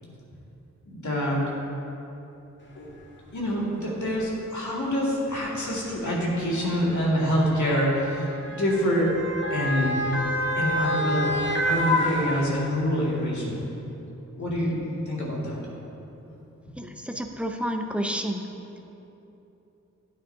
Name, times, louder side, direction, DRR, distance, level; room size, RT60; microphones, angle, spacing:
voice 1, 0.9-1.5 2.8-2.9 3.3-9.2 9.5-10.0 10.6-13.6 14.4-14.8 15.1-15.6, equal, 70° left, -5 dB, 2.2 m, -26 dB
Motor vehicle (road) / Siren, 2.9-3.0 4.0-4.2 5.3-12.9 13.3-13.4, left 1 dB, 40° left, 1.5 m, -29 dB
voice 2, 16.8-18.4, equal, 5° right, 3 dB, 0.7 m, -30 dB
12.0 x 9.1 x 2.8 m, 3.0 s
wide cardioid pair, 75°, 30 cm